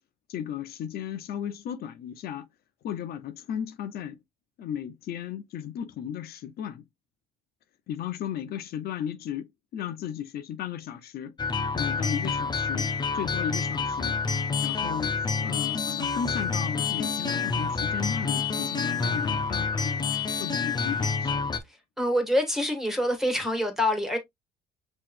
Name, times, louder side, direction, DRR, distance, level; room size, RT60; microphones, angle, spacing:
voice 1, 0.3-2.4 2.8-4.2 4.6-6.8 7.9-9.5 9.7-11.3 11.7-12.9 13.1-14.2 14.6-21.6, left 9 dB, 65° left, 0.8 m, -35 dB
sound 1, 11.4-21.6, left 5 dB, 25° left, 0.8 m, -28 dB
voice 2, 21.6-24.2, left 1 dB, ahead, 1.8 m, -26 dB
5.7 x 3.2 x 2.6 m
cardioid pair, 110°, 17 cm